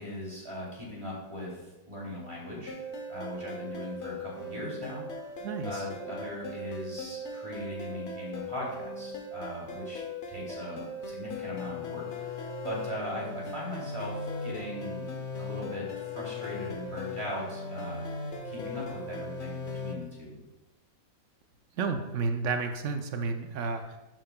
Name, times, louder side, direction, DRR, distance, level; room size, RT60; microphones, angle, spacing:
voice 1, 0.0-1.6 1.9-2.8 3.1-5.3 5.6-10.0 10.3-15.1 15.4-18.0 18.4-20.4, left 1 dB, 15° right, -4 dB, 2.6 m, -39 dB
sound 1, 2.7-19.9, left 2 dB, 50° left, 0.9 m, -38 dB
voice 2, 5.4-5.9 21.8-24.0, right 4 dB, 85° right, 6 dB, 0.6 m, -31 dB
11.5 x 7.6 x 2.2 m, 1.0 s
omnidirectional pair, 2.0 m